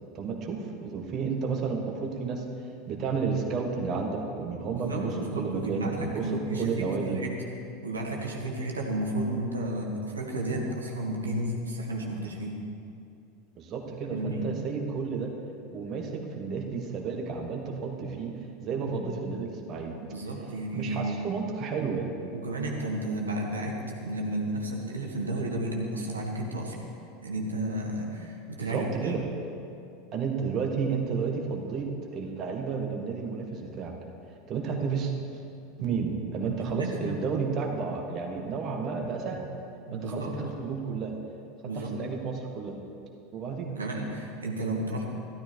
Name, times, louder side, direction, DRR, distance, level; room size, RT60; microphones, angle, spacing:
voice 1, 0.1-2.4 2.9-7.2 13.6-15.3 15.7-19.9 20.7-22.1 28.6-29.2 30.1-31.9 32.1-33.9 34.5-35.1 35.8-39.4 39.9-41.2 41.7-42.8 43.3-43.7, right 5 dB, 40° right, 1 dB, 1.6 m, -32 dB
voice 2, 4.7-7.3 7.8-12.6 14.0-14.5 18.8-19.0 20.1-21.2 22.3-26.9 27.2-29.1 36.5-37.2 39.9-40.4 41.6-41.9 43.7-45.0, right 1 dB, 80° right, -1 dB, 1.9 m, -32 dB
14.0 x 12.5 x 4.6 m, 2.6 s
figure-of-eight pair, 80°, 0 cm